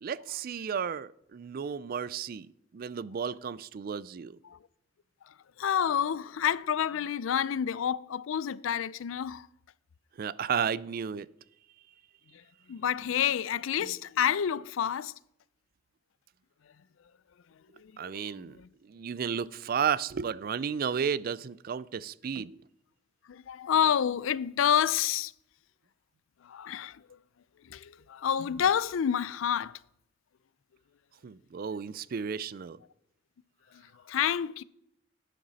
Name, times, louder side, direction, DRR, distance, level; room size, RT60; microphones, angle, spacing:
voice 1, 0.0-2.5 2.7-4.4 10.2-11.3 13.8-13.9 18.0-22.6 31.2-32.8, right 7 dB, 45° right, 0.3 m, -33 dB
voice 2, 5.2-9.5 12.3-12.4 12.7-15.2 17.7-18.7 23.3-25.3 26.4-27.1 27.6-29.8 33.7-34.6, left 9 dB, 80° left, 0.4 m, -29 dB
11.0 x 9.2 x 4.1 m
head